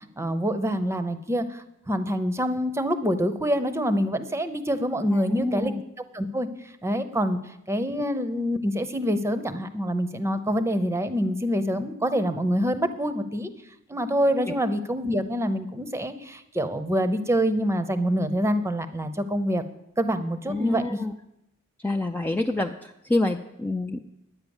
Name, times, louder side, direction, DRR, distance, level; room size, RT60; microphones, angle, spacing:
voice 1, 0.2-5.7 6.1-6.5 6.8-7.4 7.7-13.5 13.9-19.6 20.0-21.0, equal, 15° right, 11 dB, 0.7 m, -26 dB
voice 2, 5.1-5.8 14.5-14.6 20.5-21.1 21.8-24.0, left 2 dB, 10° left, 3 dB, 0.4 m, -27 dB
10.5 x 8.9 x 7.1 m, 0.85 s
head